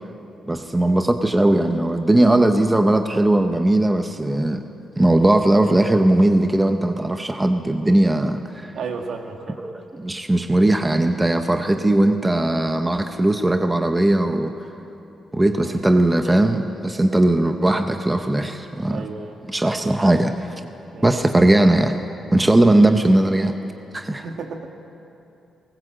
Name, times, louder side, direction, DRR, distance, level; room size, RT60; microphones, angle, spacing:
voice 1, 0.5-4.6 5.0-8.7 9.6-14.5 15.3-19.0 19.5-20.6 21.0-22.0 22.3-23.6 23.9-24.2, right 1 dB, 10° right, 6 dB, 0.8 m, -18 dB
voice 2, 8.7-9.6 15.6-15.8 18.9-19.4 20.9-21.1 24.1-24.7, right 5 dB, 65° right, 4 dB, 1.9 m, -33 dB
19.5 x 19.0 x 7.9 m, 2.8 s
wide cardioid pair, 160°, 0 cm